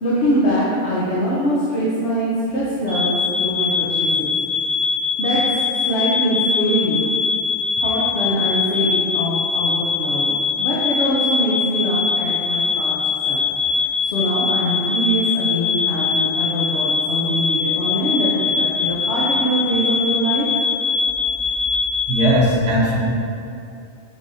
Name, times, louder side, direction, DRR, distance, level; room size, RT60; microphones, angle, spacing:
voice 1, 0.0-4.3 5.2-7.0 7.8-10.3 10.6-12.9 13.3-13.4 14.0-20.5, equal, 75° left, -7 dB, 1.2 m, -23 dB
sound 1, 2.9-22.2, left 5 dB, 40° left, 1.0 m, -22 dB
voice 2, 22.1-23.0, equal, 70° right, -2 dB, 1.2 m, -17 dB
7.1 x 5.0 x 2.7 m, 2.6 s
omnidirectional pair, 1.1 m